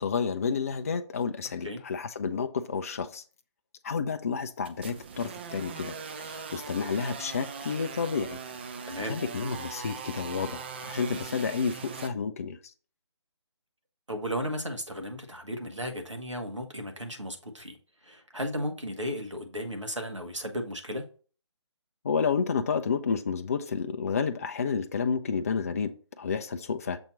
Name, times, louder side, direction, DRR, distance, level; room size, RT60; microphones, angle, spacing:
voice 1, 0.0-3.2 3.8-8.4 9.0-12.6 22.0-27.0, left 5 dB, 30° left, 0.4 m, -30 dB
sound 1, 4.6-12.1, right 5 dB, 20° right, 0.5 m, -40 dB
voice 2, 8.9-9.2 14.1-17.8 18.0-21.0, equal, 85° right, 1.6 m, -35 dB
7.0 x 2.9 x 5.4 m
figure-of-eight pair, 145°, 15 cm